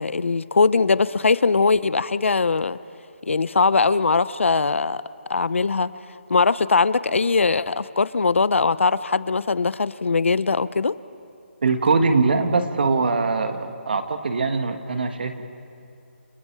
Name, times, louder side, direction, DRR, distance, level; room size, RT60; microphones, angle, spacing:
voice 1, 0.0-2.8 3.2-5.0 5.3-5.9 6.3-11.0, left 4 dB, 80° left, 17 dB, 0.8 m, -21 dB
voice 2, 11.6-15.4, right 4 dB, 50° right, 7 dB, 1.8 m, -22 dB
29.5 x 29.0 x 4.8 m, 2.5 s
hypercardioid pair, 175°, 7 cm